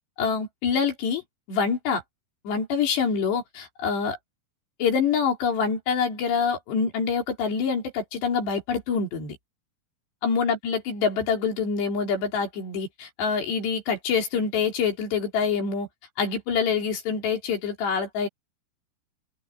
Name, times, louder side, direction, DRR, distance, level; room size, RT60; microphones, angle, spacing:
voice 1, 0.2-1.2 1.5-2.0 2.5-4.2 4.8-9.4 10.2-15.9 16.2-18.3, left 6 dB, 80° left, 6.1 m, -26 dB
open air
omnidirectional pair, 4.8 m